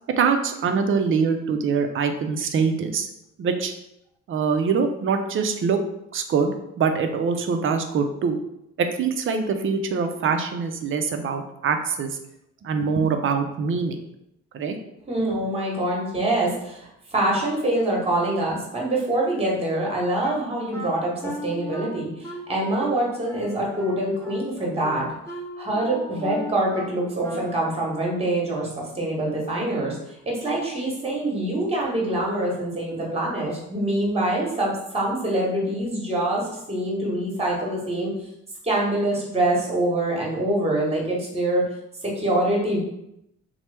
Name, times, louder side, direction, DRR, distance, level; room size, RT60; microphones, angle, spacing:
voice 1, 0.2-3.1 3.4-3.7 4.3-5.8 6.1-8.4 8.8-12.2 12.6-14.0 14.5-14.7, right 5 dB, 45° right, 6 dB, 0.4 m, -24 dB
voice 2, 15.1-25.1 25.6-28.7 28.9-30.0 30.2-38.1 38.6-41.6 42.0-42.8, right 1 dB, 20° right, -2 dB, 1.1 m, -25 dB
Wind instrument woodwind instrument, 20.2-27.8, equal, 10° left, 0.9 m, -37 dB
2.9 x 2.1 x 3.3 m, 0.81 s
cardioid pair, 90°, 30 cm